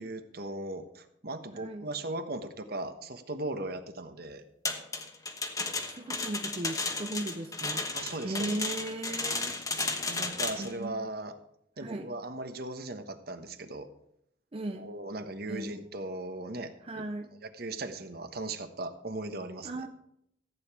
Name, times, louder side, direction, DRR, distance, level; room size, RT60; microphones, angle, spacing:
voice 1, 0.0-4.4 7.9-8.6 10.1-11.3 11.8-13.9 14.7-17.0 17.4-19.7, right 2 dB, 55° right, 8 dB, 1.2 m, -38 dB
voice 2, 1.5-1.9 5.6-8.0 8.2-9.6 10.6-10.9 11.8-12.1 14.5-14.9 15.5-15.8 16.8-17.3 19.6-19.9, right 1 dB, 30° right, 6 dB, 0.6 m, -37 dB
sound 1, 4.7-10.7, left 3 dB, 20° left, 1.2 m, -34 dB
15.0 x 8.9 x 4.8 m, 0.75 s
head